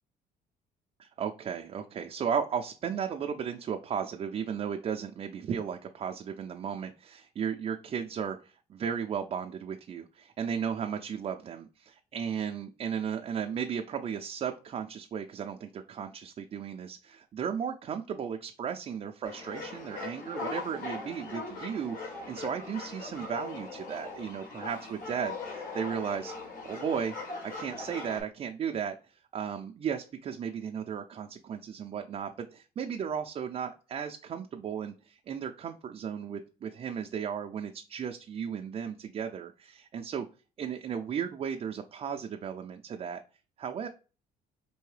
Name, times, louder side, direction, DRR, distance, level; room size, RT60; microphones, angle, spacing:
voice 1, 1.0-26.3 26.6-27.1 27.4-40.3 40.6-43.2 43.6-43.9, right 7 dB, 35° right, 4 dB, 0.4 m, -35 dB
sound 1, 19.2-28.2, left 3 dB, 55° left, 2.1 m, -40 dB
4.5 x 2.7 x 3.2 m, 0.35 s
cardioid pair, 110°, 17 cm